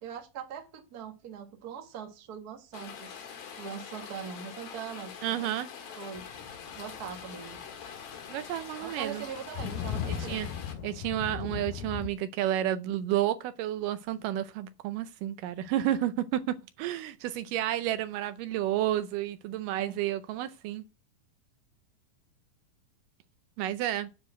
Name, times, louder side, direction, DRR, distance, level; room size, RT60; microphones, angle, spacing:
voice 1, 0.0-3.2 3.6-5.4 6.0-6.3 6.8-7.6 8.8-10.5 19.8-19.9, right 7 dB, 45° right, 1.2 m, -41 dB
Rain, 2.7-10.7, left 7 dB, 60° left, 2.7 m, -44 dB
voice 2, 5.2-5.7 8.3-9.2 10.1-10.5 10.8-20.8 23.6-24.1, right 12 dB, 80° right, 2.1 m, -31 dB
sound 1, 6.2-12.1, left 8 dB, 80° left, 2.3 m, -38 dB
10.0 x 4.4 x 7.8 m
omnidirectional pair, 4.0 m